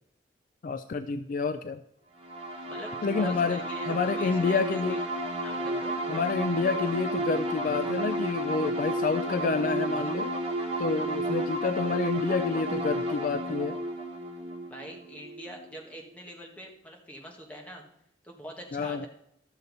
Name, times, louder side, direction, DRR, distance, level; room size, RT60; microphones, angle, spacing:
voice 1, 0.6-1.8 3.0-5.0 6.1-10.3 10.8-13.8 18.7-19.1, left 4 dB, 50° left, 11 dB, 0.3 m, -28 dB
sound 1, 2.2-15.7, right 1 dB, 35° right, 1.3 m, -32 dB
voice 2, 2.7-5.1 5.4-6.0 14.7-17.8 18.2-19.1, equal, 10° left, -1 dB, 1.5 m, -44 dB
12.5 x 6.8 x 4.0 m, 0.78 s
head